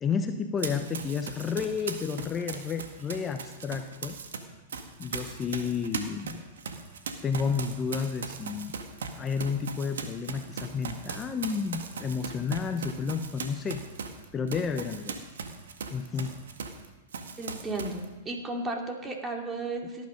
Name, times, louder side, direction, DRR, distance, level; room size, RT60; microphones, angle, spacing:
voice 1, 0.0-4.2 5.0-6.4 7.2-8.7 9.1-13.8 14.3-15.2 15.9-16.3, left 6 dB, 25° left, 7 dB, 1.0 m, -31 dB
Run, 0.6-4.4 4.7-16.8 17.1-18.0, right 5 dB, 80° right, 1.7 m, -38 dB
voice 2, 17.4-20.1, right 2 dB, 20° right, 2 dB, 2.6 m, -34 dB
17.5 x 11.0 x 5.3 m, 1.1 s
hypercardioid pair, 110°, 0 cm